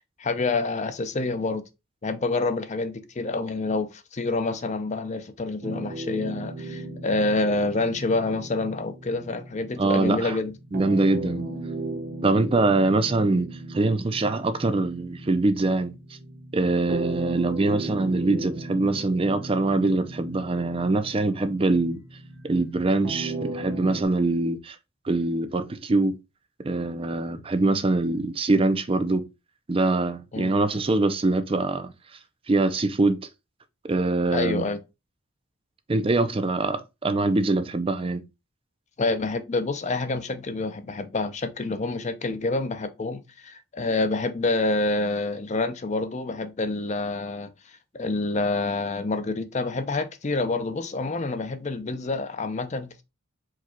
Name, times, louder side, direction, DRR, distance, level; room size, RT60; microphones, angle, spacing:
voice 1, 0.2-1.6 2.0-10.5 30.3-30.5 34.3-34.8 39.0-47.5 47.9-53.0, left 3 dB, 35° left, 0.5 m, -27 dB
Loops -- Stargaze Movement, 5.6-24.0, right 2 dB, 55° right, 1.0 m, -37 dB
voice 2, 9.8-10.4 10.7-11.5 12.2-15.9 16.5-22.0 22.4-24.8 25.0-26.2 26.6-29.2 29.7-31.9 32.5-33.2 33.9-34.7 35.9-38.2, right 2 dB, 25° right, 0.5 m, -23 dB
4.7 x 2.3 x 4.3 m
head